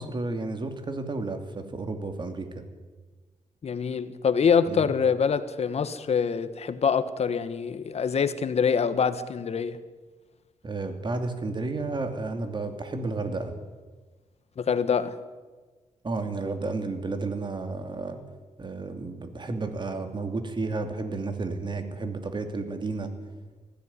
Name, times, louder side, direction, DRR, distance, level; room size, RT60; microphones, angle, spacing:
voice 1, 0.0-2.6 4.7-4.9 10.6-13.5 16.0-18.2 18.6-23.1, right 3 dB, 40° right, 7 dB, 2.8 m, -32 dB
voice 2, 3.6-9.8 14.6-15.2, left 6 dB, 60° left, 12 dB, 1.4 m, -25 dB
19.5 x 16.0 x 9.8 m, 1.3 s
cardioid pair, 95°, 12 cm